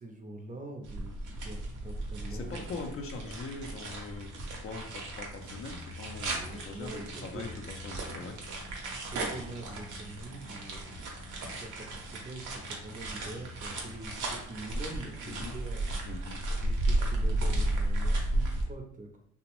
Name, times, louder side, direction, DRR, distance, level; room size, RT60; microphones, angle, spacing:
voice 1, 0.0-2.8 6.3-7.6 9.0-16.1 16.6-19.2, right 2 dB, 25° right, 2 dB, 0.5 m, -45 dB
sound 1, 0.8-18.6, right 1 dB, 85° right, 0.7 m, -34 dB
voice 2, 2.2-8.4 15.2-15.6 16.0-16.4, left 3 dB, 50° left, 4 dB, 0.5 m, -42 dB
2.8 x 2.1 x 2.9 m, 0.66 s
cardioid pair, 90°, 30 cm